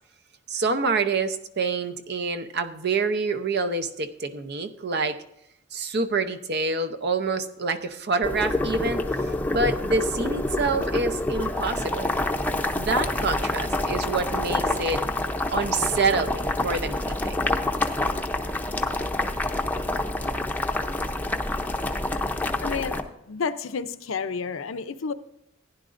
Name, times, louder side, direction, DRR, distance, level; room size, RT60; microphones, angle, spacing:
voice 1, 0.5-5.2 5.7-9.0 9.5-12.1 12.7-15.0 15.5-17.3, right 3 dB, 55° right, 9 dB, 0.8 m, -27 dB
Boiling, 8.2-23.0, left 2 dB, 10° left, 0.7 m, -27 dB
voice 2, 22.6-23.0 23.3-25.1, left 5 dB, 75° left, 11 dB, 0.6 m, -30 dB
15.5 x 10.5 x 2.5 m, 0.78 s
head